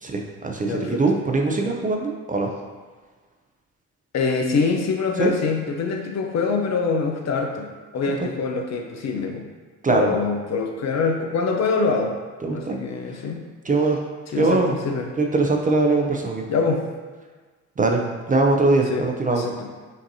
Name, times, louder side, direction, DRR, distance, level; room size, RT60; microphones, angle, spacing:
voice 1, 0.0-2.5 5.2-5.3 9.8-10.2 12.4-12.8 13.6-14.0 14.4-14.7 15.2-16.5 17.8-18.0 18.3-19.4, right 3 dB, 20° right, 1 dB, 0.5 m, -21 dB
voice 2, 0.7-1.0 1.6-1.7 4.1-7.7 7.9-9.4 9.9-12.2 12.5-13.4 14.3-15.1 16.5-16.9 18.9-19.1 19.3-19.7, left 4 dB, 45° left, 3 dB, 0.6 m, -24 dB
5.2 x 2.6 x 2.7 m, 1.4 s
hypercardioid pair, 55°, 37 cm